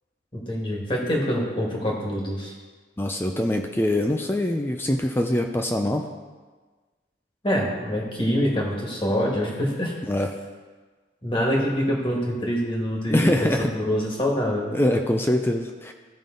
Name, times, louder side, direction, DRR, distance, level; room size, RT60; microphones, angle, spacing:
voice 1, 0.3-2.5 7.4-9.9 11.2-14.7, equal, 25° left, -2 dB, 1.6 m, -25 dB
voice 2, 3.0-6.1 10.1-10.4 13.1-13.7 14.7-15.9, left 1 dB, 10° left, 4 dB, 0.4 m, -23 dB
14.0 x 5.3 x 3.8 m, 1.4 s
head